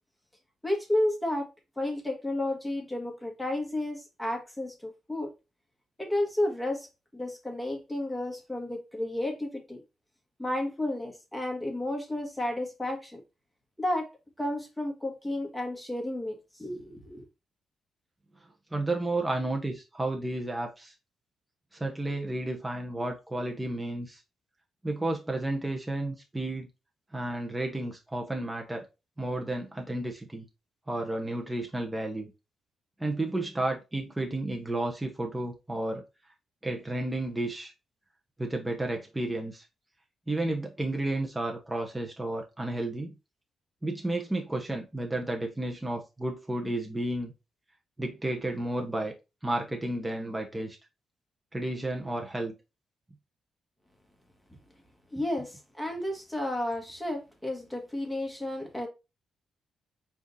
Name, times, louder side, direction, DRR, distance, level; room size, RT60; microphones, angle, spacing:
voice 1, 0.6-1.5 1.8-5.3 6.0-6.9 7.1-9.8 10.4-13.2 13.8-14.1 14.4-17.2 55.1-58.9, left 1 dB, 5° left, 1.5 m, -32 dB
voice 2, 18.4-20.9 21.7-24.2 24.8-26.7 27.1-28.9 29.2-30.5 30.9-32.3 33.0-36.0 36.6-37.7 38.4-39.7 40.3-43.1 43.8-47.3 48.0-49.1 49.4-50.8 51.5-52.6, right 2 dB, 15° right, 0.9 m, -32 dB
5.0 x 2.7 x 3.9 m
cardioid pair, 75°, 0 cm